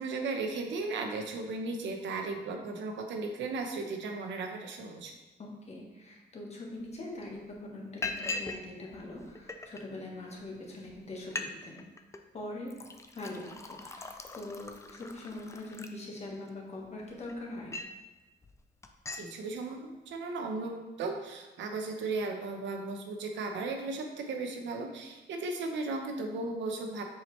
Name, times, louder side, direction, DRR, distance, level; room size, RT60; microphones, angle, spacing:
voice 1, 0.0-5.1 19.1-27.0, right 3 dB, 85° right, 3 dB, 0.9 m, -36 dB
voice 2, 5.4-11.8 12.3-12.7 13.1-17.8, left 2 dB, 35° left, -2 dB, 1.4 m, -42 dB
Liquid, 6.9-7.0 7.3-7.5 8.0-8.6 8.9-9.8 10.5-10.6 10.9-11.0 11.2-11.5 11.8-12.2 12.7-16.5 17.0-18.0 18.4-18.6 18.8-19.3, left 3 dB, 15° left, 0.4 m, -40 dB
7.2 x 4.9 x 3.1 m, 1.1 s
cardioid pair, 150°, 19 cm